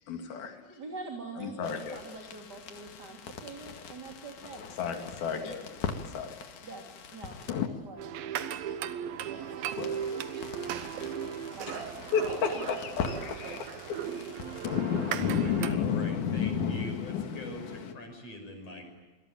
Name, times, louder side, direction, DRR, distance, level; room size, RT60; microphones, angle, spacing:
voice 1, 0.1-0.6 1.4-2.0 4.8-5.7 6.1-6.4 9.8-9.9 11.0-11.1 11.7-11.8 12.1-14.0, left 5 dB, 80° left, 5 dB, 4.6 m, -34 dB
voice 2, 0.7-4.7 6.6-6.8 7.1-8.0 9.3-9.7 11.5-11.9 12.4-12.7, right 3 dB, 30° right, 2 dB, 3.2 m, -44 dB
sound 1, 1.6-7.7 9.7-17.9, left 7 dB, 60° left, 3.2 m, -35 dB
sound 2, 8.0-15.7, right 9 dB, 80° right, 3.0 m, -37 dB
voice 3, 15.1-18.8, left 1 dB, 45° left, 4 dB, 7.4 m, -43 dB
28.0 x 22.5 x 8.9 m, 1.2 s
omnidirectional pair, 4.2 m